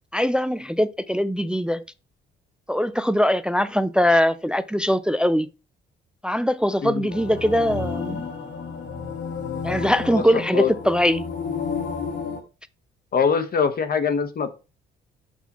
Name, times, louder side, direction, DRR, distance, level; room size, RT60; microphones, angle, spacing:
voice 1, 0.1-1.8 2.7-5.5 6.2-8.3 9.6-11.3, equal, 5° right, 0.3 m, -21 dB
sound 1, 7.1-12.4, left 5 dB, 70° left, 1.4 m, -31 dB
voice 2, 10.1-10.7 13.1-14.5, left 6 dB, 50° left, 0.9 m, -23 dB
6.1 x 5.6 x 2.9 m
cardioid pair, 90°, 20 cm